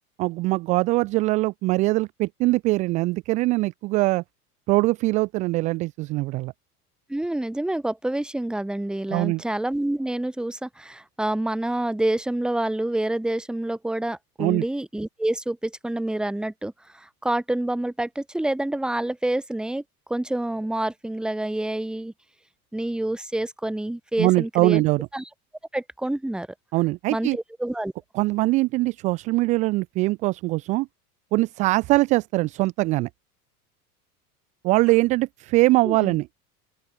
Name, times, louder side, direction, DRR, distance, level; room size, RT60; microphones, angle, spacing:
voice 1, 0.2-4.2 4.7-6.5 9.1-9.4 14.4-14.6 24.2-25.1 26.7-27.4 28.1-30.9 31.3-33.1 34.6-36.3, right 21 dB, 20° right, 0.3 m, -22 dB
voice 2, 7.1-19.8 20.1-22.1 22.7-24.8 25.1-25.2 25.7-26.5 27.1-27.9 35.8-36.1, right 1 dB, ahead, 0.7 m, -27 dB
open air
figure-of-eight pair, 80°, 46 cm